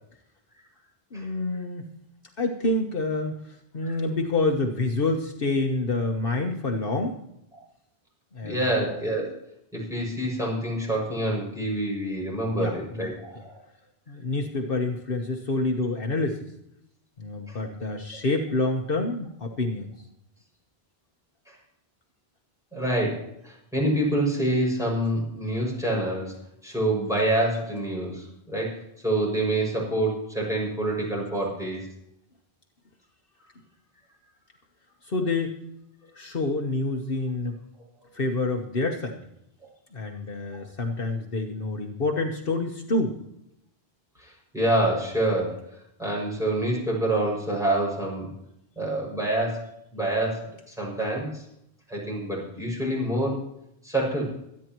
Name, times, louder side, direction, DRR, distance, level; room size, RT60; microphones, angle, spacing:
voice 1, 1.1-1.9 2.4-7.2 8.3-8.9 12.6-13.1 14.1-16.5 17.2-19.9 35.0-35.6 36.1-37.6 38.1-39.2 39.9-43.1, left 2 dB, 60° left, 2 dB, 1.4 m, -27 dB
voice 2, 8.4-9.4 9.7-13.6 17.5-17.6 21.5-21.6 22.7-26.3 26.6-31.9 40.5-40.6 44.2-45.6 46.0-48.3 48.8-51.4 51.9-53.4 53.8-54.2, right 1 dB, 5° right, -3 dB, 6.4 m, -27 dB
25.0 x 9.8 x 3.0 m, 0.79 s
omnidirectional pair, 1.0 m